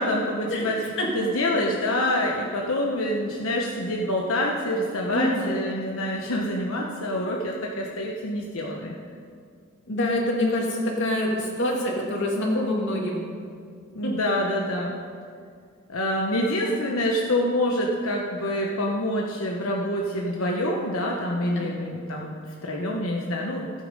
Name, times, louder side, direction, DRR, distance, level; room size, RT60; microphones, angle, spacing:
voice 1, 0.0-0.8 1.1-8.9 13.9-15.0 15.9-22.3 22.6-23.7, left 1 dB, 90° left, -1 dB, 1.1 m, -26 dB
voice 2, 1.0-1.3 5.1-5.6 9.9-13.2 14.0-14.1 21.5-21.7, left 1 dB, 60° left, -1 dB, 2.4 m, -25 dB
15.5 x 8.4 x 5.4 m, 2.2 s
head